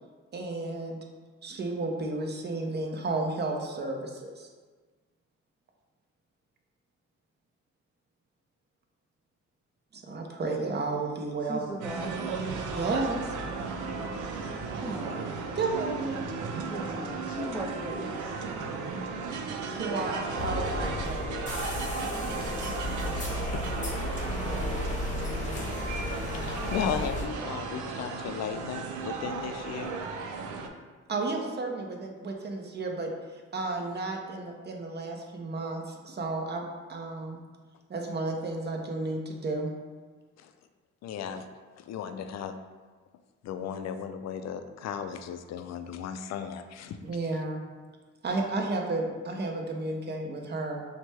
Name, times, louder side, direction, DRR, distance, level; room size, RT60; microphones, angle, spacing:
voice 1, 0.3-1.0 1.4-4.5 9.9-11.6 12.7-13.4 15.6-16.2 19.7-21.3 24.4-24.9 31.1-33.1 33.5-37.4 37.9-39.7 47.0-47.6 48.2-50.8, right 3 dB, 35° right, 2 dB, 0.7 m, -32 dB
voice 2, 11.4-12.2 14.8-15.3 16.6-18.3 22.0-23.6, equal, 5° right, -3 dB, 0.4 m, -39 dB
sound 1, 11.8-30.7, right 4 dB, 80° right, 0.5 m, -35 dB
sound 2, 20.4-27.3, left 1 dB, 25° left, 0.9 m, -33 dB
voice 3, 23.5-23.9 26.3-29.9 40.4-40.5 41.0-41.4 41.8-42.6 43.4-47.0, left 7 dB, 60° left, 9 dB, 0.4 m, -35 dB
6.1 x 2.2 x 3.3 m, 1.4 s
cardioid pair, 90°, 30 cm